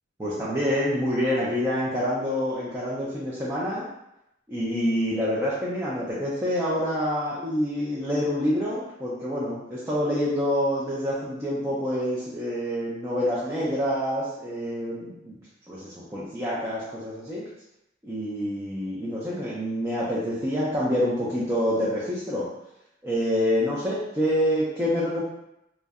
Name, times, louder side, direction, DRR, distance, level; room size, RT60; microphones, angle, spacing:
voice 1, 0.2-3.9 4.5-15.4 15.7-17.5 18.0-22.5 23.0-25.2, equal, 15° right, -8 dB, 0.4 m, -27 dB
2.6 x 2.0 x 2.3 m, 0.86 s
head